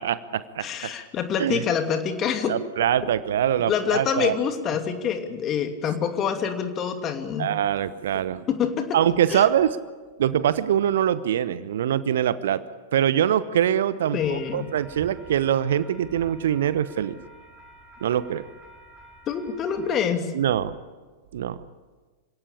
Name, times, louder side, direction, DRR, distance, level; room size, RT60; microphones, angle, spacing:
voice 1, 0.0-0.9 1.4-1.6 2.5-4.4 7.4-8.4 8.9-9.8 10.2-12.6 12.9-17.2 18.0-18.4 20.3-20.7 21.3-21.6, right 10 dB, 60° right, 16 dB, 0.9 m, -23 dB
voice 2, 0.6-2.6 3.7-7.5 8.5-8.9 9.3-9.4 14.1-14.7 19.3-20.3, left 7 dB, 30° left, 6 dB, 2.7 m, -26 dB
sound 1, 14.2-19.9, right 2 dB, 10° right, 4.0 m, -49 dB
27.5 x 17.5 x 8.7 m, 1.3 s
figure-of-eight pair, 95°, 0 cm